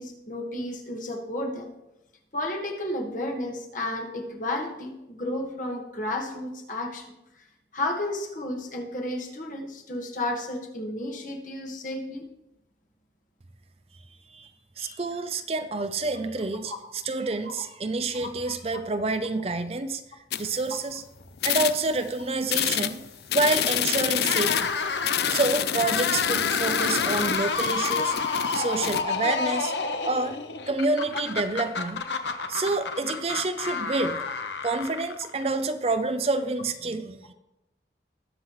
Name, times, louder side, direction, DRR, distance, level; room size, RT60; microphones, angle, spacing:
voice 1, 0.0-1.7 2.3-7.4 7.7-12.3 14.8-15.0 16.6-16.8 17.4-17.5 18.1-18.5 28.9-29.1, left 1 dB, 45° left, 2 dB, 1.6 m, -32 dB
voice 2, 14.8-20.0 20.4-21.0 21.4-23.0 23.3-24.7 25.3-28.1 28.5-29.7 30.0-30.4 30.7-32.0 32.5-34.3 34.6-37.3, right 3 dB, 35° right, 10 dB, 0.5 m, -28 dB
sound 1, 20.3-21.0 21.4-22.1 22.5-29.0, left 10 dB, 65° left, 0.4 m, -28 dB
sound 2, 24.2-35.4, left 4 dB, 85° left, 0.9 m, -30 dB
20.0 x 7.5 x 3.2 m, 0.91 s
head